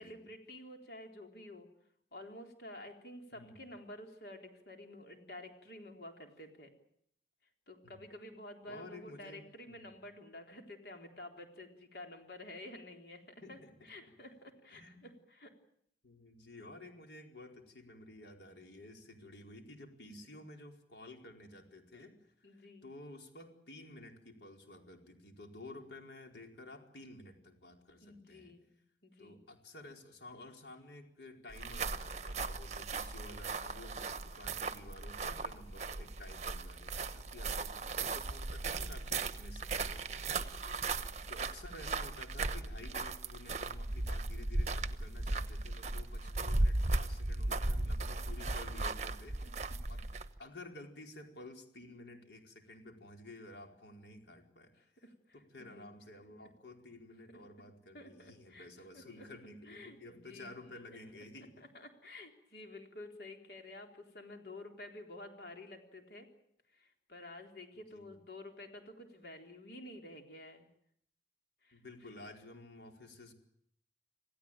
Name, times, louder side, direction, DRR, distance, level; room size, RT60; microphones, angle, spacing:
voice 1, 0.0-1.7 2.1-6.7 7.7-13.6 13.8-15.5 22.4-22.9 28.0-28.7 29.0-29.4 40.5-40.9 49.4-49.5 54.8-55.9 57.9-59.3 59.7-60.7 61.7-66.3 66.7-70.7 71.6-71.8, left 1 dB, 65° left, 3 dB, 3.9 m, -51 dB
voice 2, 3.3-3.6 7.8-8.1 8.6-9.4 9.7-9.9 13.4-14.1 14.7-15.1 16.0-28.5 29.2-40.3 41.3-50.1 50.4-54.7 55.3-61.7 67.9-68.2 71.7-73.3, left 2 dB, 85° left, 3 dB, 4.7 m, -52 dB
sound 1, 31.5-50.4, right 2 dB, 40° right, 1.1 m, -37 dB
27.5 x 17.0 x 9.0 m, 0.71 s
head